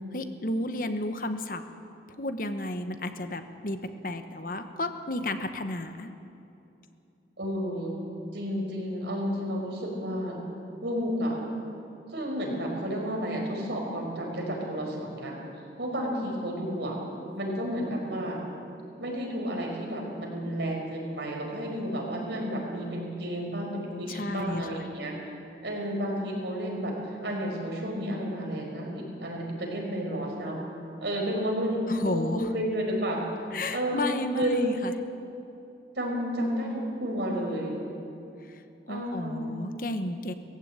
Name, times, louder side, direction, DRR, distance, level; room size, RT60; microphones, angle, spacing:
voice 1, 0.1-1.6 2.2-6.1 24.1-24.7 31.9-32.5 33.5-34.9 38.5-38.6 38.9-40.3, left 1 dB, 50° left, 8 dB, 1.1 m, -32 dB
voice 2, 7.4-8.0 8.3-10.4 10.8-11.4 12.1-15.4 15.8-17.0 17.3-18.4 19.0-25.1 25.6-30.6 31.0-33.2 33.7-34.1 34.3-34.7 35.9-37.8 38.9-39.5, equal, 75° right, -1 dB, 5.3 m, -31 dB
19.0 x 15.5 x 9.0 m, 2.8 s
head